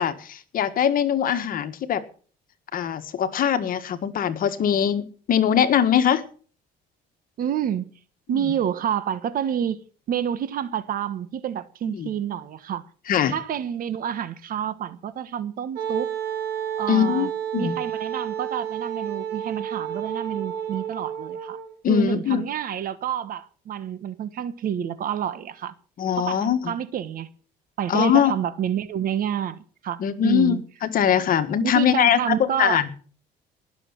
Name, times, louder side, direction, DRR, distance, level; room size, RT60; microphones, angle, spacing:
voice 1, 0.0-2.0 2.7-6.2 8.3-8.4 11.9-12.1 13.1-13.4 16.9-17.8 21.8-22.4 26.0-26.7 27.9-28.3 30.0-32.9, left 9 dB, 55° left, 1.6 m, -22 dB
voice 2, 7.4-7.9 8.3-9.8 10.1-12.8 13.3-16.1 16.8-17.3 17.6-21.6 21.9-25.7 26.2-27.3 27.8-30.6 31.6-32.8, right 9 dB, 55° right, 1.3 m, -28 dB
Wind instrument woodwind instrument, 15.7-21.7, right 9 dB, 80° right, 4.2 m, -30 dB
19.5 x 7.1 x 7.2 m
cardioid pair, 110°, 17 cm